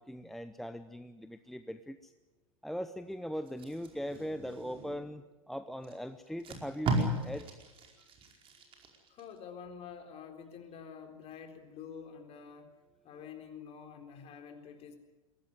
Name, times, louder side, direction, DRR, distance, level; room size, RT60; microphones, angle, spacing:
voice 1, 0.1-2.1 2.6-7.5, equal, ahead, 10 dB, 0.8 m, -40 dB
Packing tape duct tape, 3.5-5.1 5.8-5.9 6.3-9.2 9.7-9.9, right 2 dB, 30° right, 4.9 m, -36 dB
voice 2, 9.1-12.7 13.0-15.0, left 7 dB, 35° left, 5 dB, 3.9 m, -48 dB
22.0 x 17.5 x 9.5 m, 1.2 s
hypercardioid pair, 100°, 17 cm